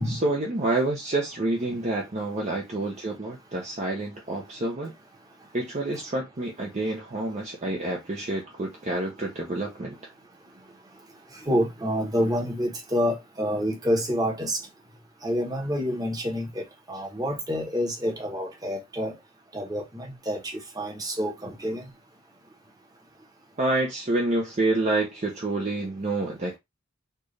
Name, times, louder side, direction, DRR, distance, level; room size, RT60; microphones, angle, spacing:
voice 1, 0.0-4.9 5.5-10.0 23.6-26.6, right 2 dB, 35° right, 0.7 m, -28 dB
voice 2, 11.5-14.6 15.2-16.6 16.9-19.1 19.5-21.8, equal, 20° right, 1.1 m, -28 dB
4.4 x 2.5 x 3.2 m
head